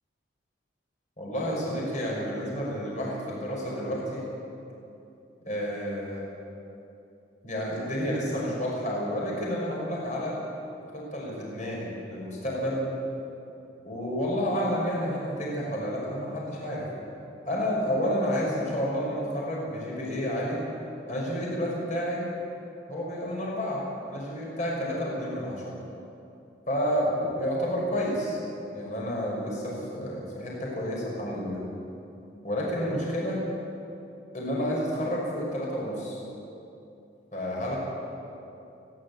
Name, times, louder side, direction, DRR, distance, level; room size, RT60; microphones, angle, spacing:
voice 1, 1.2-4.3 5.4-6.2 7.4-10.4 10.9-12.8 13.8-16.9 17.4-20.6 21.1-22.2 22.9-25.7 26.7-28.4 28.7-31.6 32.4-33.4 34.3-36.2 37.3-37.8, equal, 40° left, -4 dB, 5.8 m, -30 dB
29.5 x 11.0 x 8.6 m, 2.8 s
head